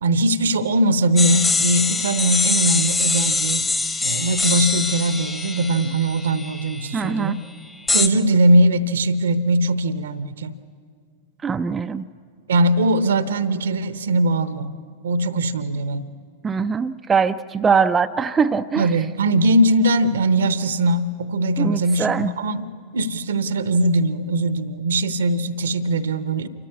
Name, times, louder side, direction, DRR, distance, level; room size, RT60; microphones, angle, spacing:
voice 1, 0.0-3.7 4.0-7.4 7.9-10.5 12.5-14.7 15.0-16.1 18.8-26.5, right 1 dB, 65° right, 14 dB, 0.9 m, -20 dB
sound 1, 1.2-6.9 7.9-8.1, left 3 dB, 15° left, 1.1 m, -23 dB
voice 2, 6.9-7.4 11.4-12.1 16.4-18.9 21.6-22.3, right 5 dB, 20° right, 8 dB, 0.5 m, -22 dB
27.5 x 14.0 x 9.6 m, 2.1 s
figure-of-eight pair, 90°, 0 cm